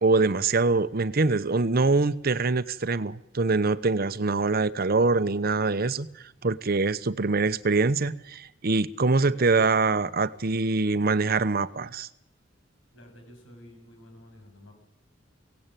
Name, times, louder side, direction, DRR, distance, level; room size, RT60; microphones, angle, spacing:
voice 1, 0.0-6.1 6.4-12.1, right 3 dB, 50° right, 0.8 m, -24 dB
voice 2, 12.9-14.7, left 1 dB, 90° left, 7.3 m, -50 dB
23.0 x 17.5 x 9.1 m
head